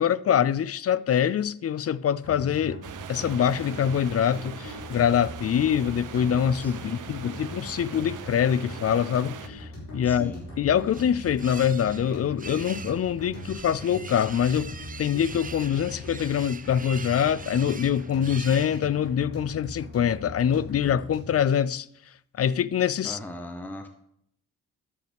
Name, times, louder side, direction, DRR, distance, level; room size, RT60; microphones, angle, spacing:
voice 1, 0.0-2.8 3.1-9.7 9.9-14.7 15.0-21.9 22.4-23.2, left 9 dB, 45° left, 0.5 m, -24 dB
sound 1, 2.2-21.4, left 1 dB, 75° left, 4.2 m, -41 dB
sound 2, 2.8-9.5, right 9 dB, 65° right, 0.9 m, -41 dB
voice 2, 6.6-7.1 10.0-10.5 23.0-23.9, left 1 dB, 5° left, 1.0 m, -39 dB
sound 3, 10.4-19.2, right 5 dB, 25° right, 0.7 m, -43 dB
11.0 x 7.7 x 3.5 m
cardioid pair, 60°, 33 cm